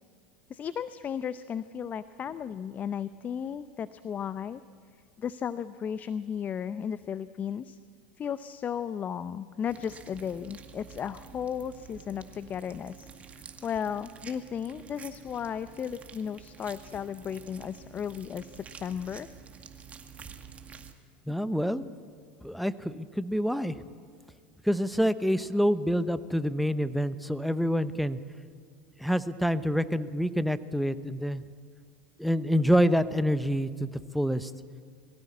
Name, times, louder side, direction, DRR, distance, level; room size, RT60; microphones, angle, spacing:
voice 1, 0.5-4.6 5.2-7.8 8.2-19.3, left 8 dB, 30° left, 14 dB, 0.6 m, -35 dB
sound 1, 9.7-20.9, right 6 dB, 25° right, 2.1 m, -49 dB
voice 2, 21.3-21.9 22.4-23.8 24.6-28.2 29.0-31.4 32.2-34.5, equal, ahead, 13 dB, 0.9 m, -27 dB
22.0 x 16.0 x 8.5 m, 2.1 s
hypercardioid pair, 90°, 5 cm